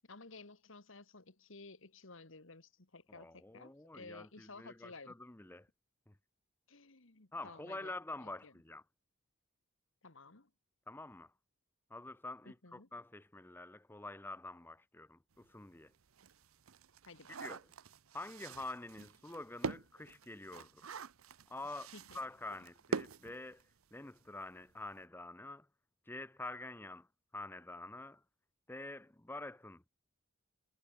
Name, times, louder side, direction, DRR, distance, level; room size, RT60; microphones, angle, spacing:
voice 1, 0.1-5.2 6.7-8.5 10.0-10.5 12.4-12.9 17.1-17.4 21.6-22.2, left 3 dB, 65° left, 1.8 m, -55 dB
voice 2, 3.1-5.7 6.1-6.2 7.3-8.8 10.9-11.3 11.9-15.9 17.3-17.6 18.1-20.8 21.5-21.9 22.1-23.6 23.9-25.7 26.1-27.1 27.3-28.2 28.7-29.9, left 2 dB, 10° left, 0.6 m, -47 dB
sound 1, 15.4-15.5 15.9-24.0 24.3-24.4 24.7-24.9, right 4 dB, 85° right, 0.8 m, -45 dB
head